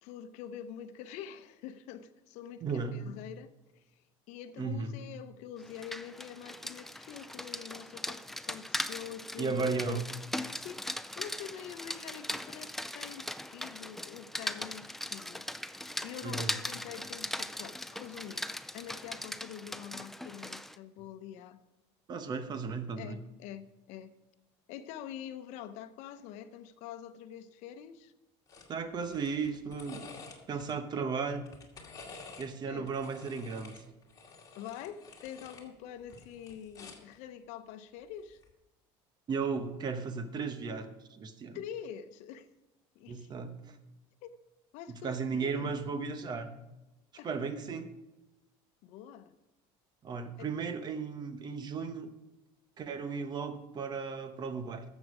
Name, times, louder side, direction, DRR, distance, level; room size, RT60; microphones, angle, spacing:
voice 1, 0.0-8.2 8.4-10.0 10.5-10.8 11.2-15.5 15.7-18.5 18.7-21.6 23.0-24.1 24.7-28.1 30.5-30.6 32.7-32.9 34.6-38.4 41.5-42.5 42.9-43.3 44.2-44.3 44.7-45.7 47.2-47.3 48.8-49.3 50.4-50.5, left 9 dB, 70° left, 11 dB, 0.8 m, -45 dB
voice 2, 2.6-3.0 4.6-4.9 9.4-10.1 16.2-16.6 22.1-23.2 28.7-30.0 30.5-31.5 32.4-33.7 39.3-41.6 43.1-43.8 44.9-46.5 47.2-47.9 50.0-52.1 52.8-54.8, right 5 dB, 35° right, 10 dB, 1.0 m, -35 dB
Rain, 5.6-20.8, left 1 dB, ahead, 0.4 m, -40 dB
sound 1, 28.5-28.7 29.0-30.7 31.4-32.5 32.9-35.7 36.0-37.1 38.3-38.5, left 4 dB, 30° left, 2.2 m, -50 dB
13.0 x 7.3 x 4.9 m, 1.0 s
cardioid pair, 125°, 12 cm